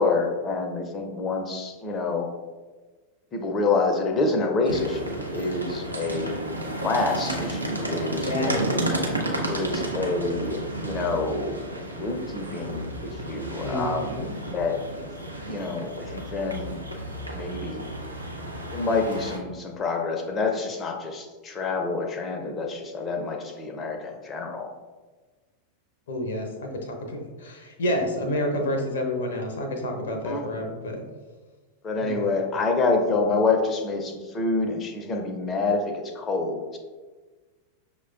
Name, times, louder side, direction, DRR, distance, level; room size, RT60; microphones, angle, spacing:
voice 1, 0.0-2.3 3.3-6.4 6.8-8.9 9.5-11.7 12.0-14.8 15.5-16.8 17.3-17.8 18.7-24.7 30.1-30.4 31.8-36.8, left 3 dB, 25° left, 3 dB, 0.5 m, -27 dB
sound 1, 4.7-19.4, right 1 dB, 85° right, 0.5 m, -32 dB
voice 2, 8.2-8.8 13.6-14.3 26.1-31.0 32.0-32.2, left 1 dB, 60° left, 3 dB, 0.6 m, -29 dB
6.0 x 2.2 x 2.4 m, 1.3 s
figure-of-eight pair, 90°, 0 cm